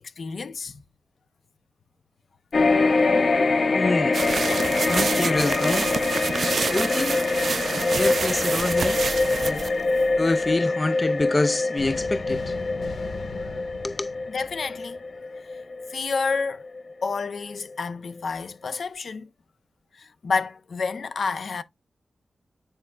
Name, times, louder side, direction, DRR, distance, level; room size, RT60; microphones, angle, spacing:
voice 1, 0.2-0.8 14.3-15.0 15.9-16.7 17.0-19.3 20.0-21.6, left 4 dB, 60° left, 0.7 m, -29 dB
sound 1, 2.5-17.1 17.5-17.6, left 3 dB, 45° left, 0.9 m, -24 dB
voice 2, 3.7-4.2 4.9-5.9 6.7-7.2 7.9-9.0 9.4-9.7 10.2-12.6 13.8-14.1, left 2 dB, 25° left, 0.4 m, -26 dB
sound 2, 4.1-10.5, right 5 dB, 55° right, 0.3 m, -28 dB
sound 3, 11.8-15.2, left 3 dB, 80° left, 1.7 m, -38 dB
8.8 x 4.9 x 2.4 m
wide cardioid pair, 170°, 0 cm